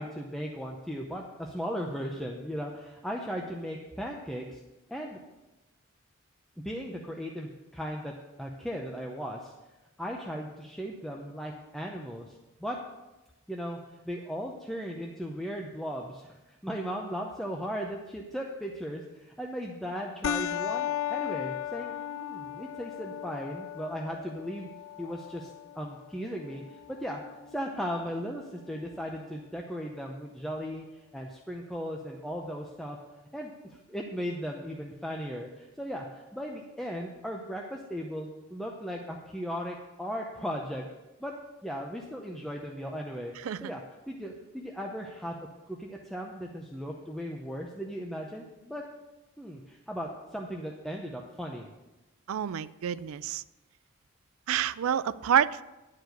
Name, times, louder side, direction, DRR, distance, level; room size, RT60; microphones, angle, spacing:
voice 1, 0.0-4.6 4.9-5.2 6.6-9.5 10.0-12.8 13.5-24.7 25.0-25.5 25.8-27.2 27.5-30.8 31.1-33.0 33.3-40.8 41.2-41.3 41.6-45.4 45.7-48.8 49.4-51.7, equal, ahead, 0 dB, 0.6 m, -37 dB
sound 1, 20.2-29.2, left 10 dB, 70° left, 0.4 m, -37 dB
voice 2, 52.3-53.4 54.5-55.6, right 9 dB, 75° right, 16 dB, 0.3 m, -28 dB
11.0 x 4.8 x 7.8 m, 1.0 s
head